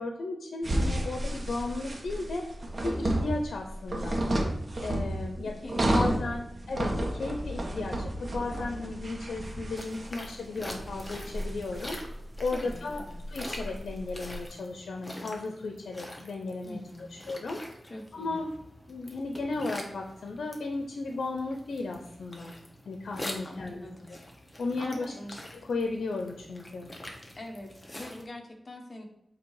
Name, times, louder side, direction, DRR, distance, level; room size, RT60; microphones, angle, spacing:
voice 1, 0.0-2.5 2.8-4.2 4.8-5.5 5.9-12.0 12.4-16.8 17.3-17.6 18.1-18.5 18.9-22.5 22.9-24.2 24.6-25.1 25.5-26.9, left 3 dB, 90° left, 3 dB, 0.7 m, -35 dB
sound 1, 0.6-14.4, right 1 dB, 45° right, 1.3 m, -32 dB
voice 2, 5.4-6.4 12.5-13.2 16.6-17.3 17.8-18.5 23.4-24.2 24.8-25.4 27.4-29.0, left 1 dB, 40° left, 2 dB, 1.2 m, -44 dB
sound 2, 9.8-28.2, left 1 dB, 25° left, 1.3 m, -45 dB
8.0 x 2.9 x 4.8 m, 0.81 s
wide cardioid pair, 70°, 0 cm